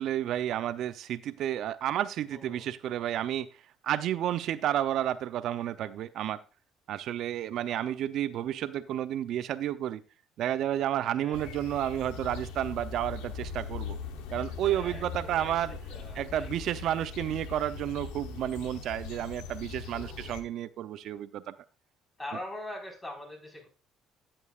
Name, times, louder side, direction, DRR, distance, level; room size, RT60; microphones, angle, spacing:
voice 1, 0.0-3.5 3.8-6.4 6.9-10.0 10.4-14.0 14.3-15.8 16.2-21.5, right 11 dB, 65° right, 13 dB, 0.6 m, -31 dB
voice 2, 2.3-2.7 7.7-7.9 8.3-8.5 11.2-11.5 14.6-17.0 19.9-20.3 22.2-23.7, left 1 dB, 20° left, 1 dB, 4.7 m, -44 dB
sound 1, 11.3-20.4, left 6 dB, 90° left, 1.0 m, -40 dB
11.0 x 8.7 x 2.5 m, 0.31 s
supercardioid pair, 90°, 0 cm